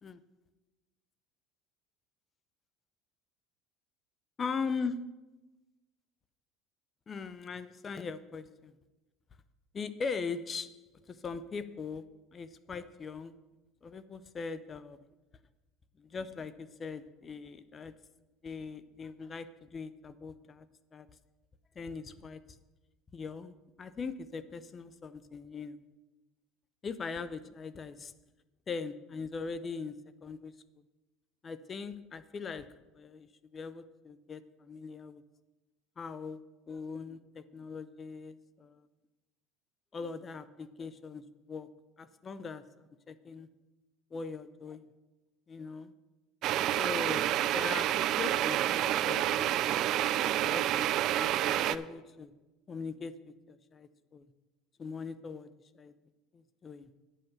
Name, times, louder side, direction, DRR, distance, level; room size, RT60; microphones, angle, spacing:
voice 1, 4.4-5.0 7.1-8.7 9.7-10.8 11.1-13.3 13.8-15.1 16.0-17.9 18.4-20.7 20.9-21.1 21.8-22.4 23.1-25.8 26.8-28.1 28.7-30.5 31.4-35.2 36.0-38.9 39.9-42.7 43.1-43.5 44.1-44.9 45.5-45.9 46.8-49.5 50.1-52.3 52.7-54.3 54.8-55.9 56.3-56.9, left 5 dB, 25° left, 14 dB, 0.5 m, -41 dB
sound 1, 46.4-51.8, right 12 dB, 50° right, 0.3 m, -29 dB
9.0 x 5.6 x 7.1 m, 1.1 s
supercardioid pair, 130°, 0 cm